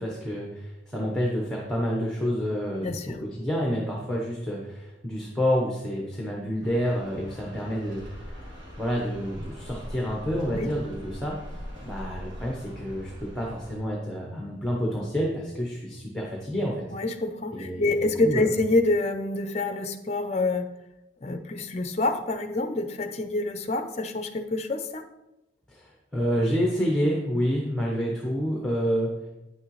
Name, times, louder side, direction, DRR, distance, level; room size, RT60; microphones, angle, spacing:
voice 1, 0.0-2.9 3.2-8.0 8.8-16.8 17.5-18.0 18.2-18.6 25.7-29.1, equal, ahead, -2 dB, 0.9 m, -28 dB
voice 2, 2.8-3.2 10.5-10.7 16.9-20.7 21.2-25.0, left 2 dB, 35° left, 8 dB, 0.5 m, -27 dB
sound 1, 6.6-13.8, equal, 65° right, 2.6 m, -41 dB
9.1 x 6.5 x 3.2 m, 0.96 s
head